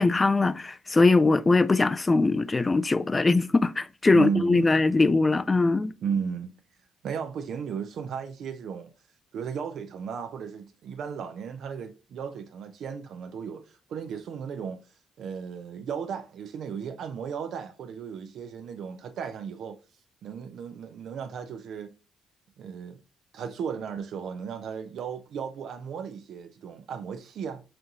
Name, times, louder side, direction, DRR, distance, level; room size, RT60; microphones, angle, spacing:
voice 1, 0.0-5.9, left 3 dB, 25° left, 0.3 m, -21 dB
voice 2, 4.1-4.8 6.0-6.5 7.0-8.9 9.3-14.8 15.2-19.8 20.2-21.9 22.6-23.0 23.3-27.6, right 7 dB, 70° right, 0.5 m, -35 dB
4.4 x 2.6 x 3.6 m
cardioid pair, 90°, 0 cm